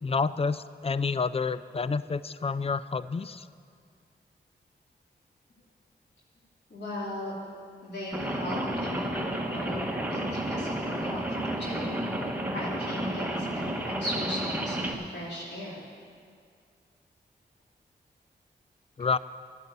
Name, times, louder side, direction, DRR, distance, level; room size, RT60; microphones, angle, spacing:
voice 1, 0.0-3.5 19.0-19.2, left 4 dB, 35° left, 16 dB, 0.4 m, -29 dB
voice 2, 6.7-7.3 7.8-9.8 10.1-11.2 11.6-11.9 12.5-15.8, equal, 70° left, -6 dB, 3.0 m, -37 dB
Rain, 8.1-14.9, right 1 dB, 10° right, 1.3 m, -31 dB
11.0 x 9.7 x 8.0 m, 2.2 s
cardioid pair, 60°, 18 cm